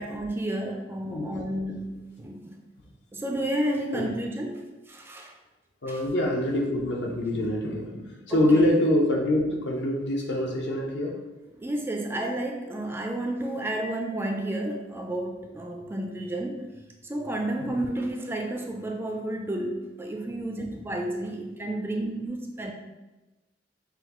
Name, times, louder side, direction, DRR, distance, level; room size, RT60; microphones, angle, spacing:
voice 1, 0.0-2.6 3.1-5.3 5.9-6.0 8.3-8.7 11.6-16.6 17.0-22.7, right 1 dB, 15° right, 1 dB, 0.3 m, -31 dB
voice 2, 1.0-1.4 3.9-4.1 5.8-11.1 17.6-17.7, left 1 dB, 70° left, 0 dB, 0.8 m, -25 dB
5.7 x 2.3 x 2.9 m, 1.1 s
head